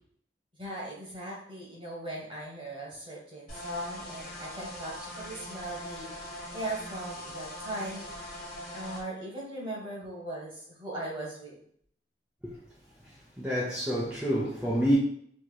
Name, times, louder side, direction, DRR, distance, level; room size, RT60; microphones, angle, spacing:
voice 1, 0.6-6.1 6.5-8.1 8.7-11.6, right 1 dB, 30° right, 1.0 m, -39 dB
sound 1, 3.5-9.0, left 1 dB, 55° left, 1.0 m, -41 dB
voice 2, 13.4-15.0, equal, 5° right, 0.4 m, -27 dB
3.1 x 2.7 x 2.2 m
head